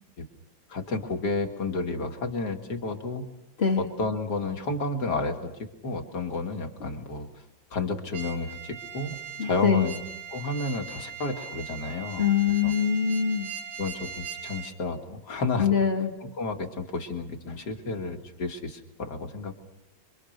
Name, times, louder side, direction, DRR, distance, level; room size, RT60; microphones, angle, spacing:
voice 1, 0.7-3.3 3.8-5.5 5.8-7.3 7.7-9.9 10.3-12.3 12.6-12.7 13.8-15.7 16.2-19.5, left 3 dB, 55° left, 4 dB, 2.6 m, -31 dB
voice 2, 3.6-3.9 9.4-9.9 12.2-13.5 15.6-16.1, left 7 dB, 30° left, 3 dB, 1.9 m, -23 dB
sound 1, 8.1-14.7, right 8 dB, 45° right, 3.3 m, -40 dB
27.0 x 23.5 x 6.6 m, 0.92 s
omnidirectional pair, 2.1 m